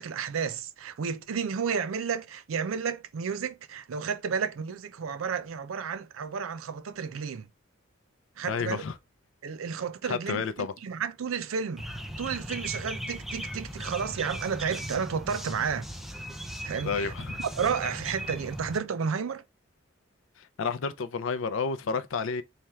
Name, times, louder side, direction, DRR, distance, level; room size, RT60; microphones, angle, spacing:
voice 1, 0.0-7.5 8.4-8.8 9.4-11.9 12.2-15.9 16.6-17.1 17.4-19.4, right 6 dB, 90° right, 0.4 m, -32 dB
voice 2, 8.5-8.9 10.0-10.7 16.8-17.4 20.4-22.4, left 5 dB, 75° left, 0.4 m, -30 dB
sound 1, 11.8-18.8, equal, ahead, 0.3 m, -38 dB
3.3 x 2.3 x 4.2 m
head